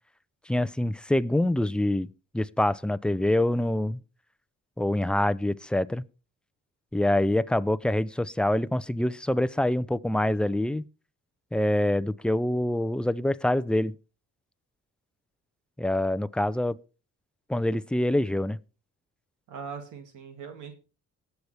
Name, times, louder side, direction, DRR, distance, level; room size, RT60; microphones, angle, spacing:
voice 1, 0.5-2.1 2.3-4.0 4.8-6.0 6.9-10.8 11.5-13.9 15.8-16.8 17.5-18.6, left 1 dB, 5° left, 0.5 m, -25 dB
voice 2, 19.5-20.7, right 6 dB, 85° right, 2.2 m, -40 dB
19.5 x 7.0 x 3.3 m
cardioid pair, 90°, 30 cm